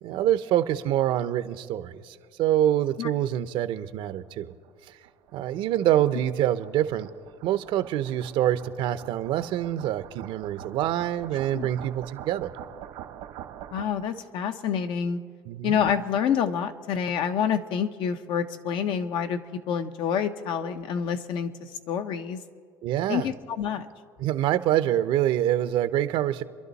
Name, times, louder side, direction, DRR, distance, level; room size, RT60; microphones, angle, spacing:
voice 1, 0.0-4.5 5.3-7.1 7.4-12.5 15.4-15.8 22.8-23.3 24.2-26.4, right 12 dB, 60° right, 12 dB, 0.8 m, -26 dB
sound 1, 4.3-14.2, right 11 dB, 75° right, 1.3 m, -45 dB
voice 2, 13.7-15.3 15.6-21.5 21.9-22.4 23.1-23.9, left 7 dB, 60° left, 8 dB, 1.0 m, -27 dB
29.5 x 11.5 x 4.1 m, 2.1 s
supercardioid pair, 110°, 10 cm